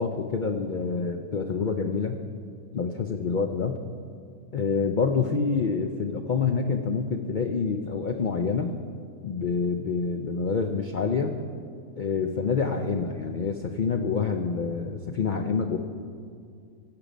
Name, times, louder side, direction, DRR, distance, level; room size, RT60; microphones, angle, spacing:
voice 1, 0.0-2.2 2.7-3.8 4.5-8.8 9.2-11.3 12.0-15.8, left 5 dB, 80° left, 5 dB, 0.4 m, -27 dB
16.5 x 6.8 x 5.0 m, 2.3 s
omnidirectional pair, 1.5 m